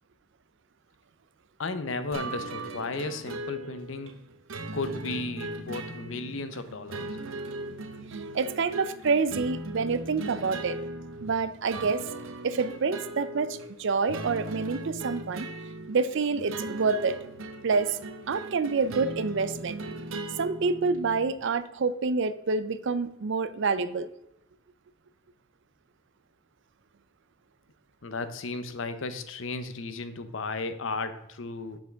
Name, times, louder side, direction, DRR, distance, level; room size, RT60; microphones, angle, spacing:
voice 1, 1.6-4.1 4.7-7.0 28.0-31.8, left 3 dB, 65° left, 10 dB, 0.8 m, -34 dB
sound 1, 2.1-21.3, right 2 dB, 75° right, 0.8 m, -38 dB
voice 2, 8.1-10.8 11.2-12.0 12.4-15.5 15.9-17.2 17.6-18.0 18.3-19.8 20.4-24.1, right 4 dB, 60° right, 14 dB, 0.5 m, -27 dB
7.3 x 7.2 x 3.6 m, 0.86 s
head